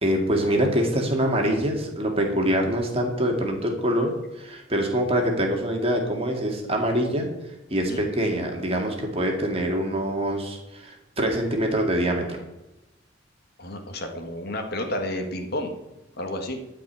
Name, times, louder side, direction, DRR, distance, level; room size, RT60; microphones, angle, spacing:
voice 1, 0.0-7.3 7.7-12.4, equal, 30° right, 2 dB, 2.1 m, -24 dB
voice 2, 13.6-15.7 16.2-16.6, left 1 dB, 50° left, 4 dB, 1.5 m, -31 dB
12.5 x 5.2 x 8.9 m, 0.92 s
head